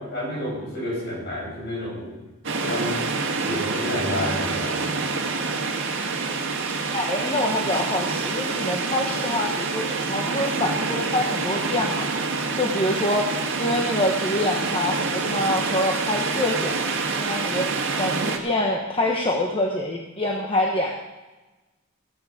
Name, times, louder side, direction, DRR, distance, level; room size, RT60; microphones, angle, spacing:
voice 1, 0.0-2.2 2.6-3.0 3.5-4.8, left 1 dB, 55° left, -2 dB, 5.5 m, -30 dB
sound 1, 2.4-18.4, right 4 dB, 60° right, 1.7 m, -27 dB
voice 2, 6.9-12.1 12.6-13.3 13.6-17.7 18.0-21.0, left 1 dB, 25° left, 0 dB, 1.1 m, -26 dB
15.0 x 10.5 x 5.0 m, 1.1 s
head